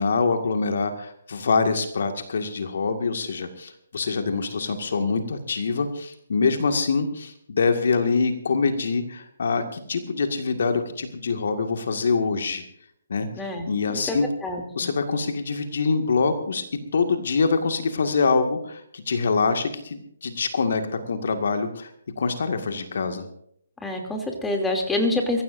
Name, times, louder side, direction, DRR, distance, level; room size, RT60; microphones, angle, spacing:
voice 1, 0.0-12.6 13.1-14.3 14.8-16.6 16.9-21.9 22.2-23.2, left 4 dB, 60° left, 7 dB, 2.0 m, -25 dB
voice 2, 14.4-14.9 23.8-25.4, left 2 dB, 5° left, 2 dB, 2.9 m, -26 dB
24.0 x 15.0 x 2.7 m, 0.68 s
figure-of-eight pair, 140°, 0 cm